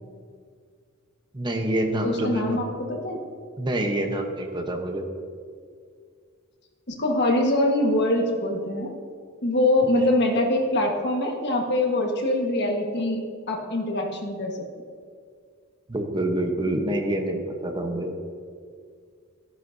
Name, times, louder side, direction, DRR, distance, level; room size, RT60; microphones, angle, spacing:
voice 1, 1.3-2.6 3.6-5.0 15.9-18.1, right 1 dB, 20° right, 3 dB, 0.9 m, -27 dB
voice 2, 2.0-3.2 6.9-8.9 9.4-14.6, left 1 dB, 55° left, 1 dB, 1.4 m, -24 dB
13.5 x 11.0 x 2.7 m, 2.1 s
head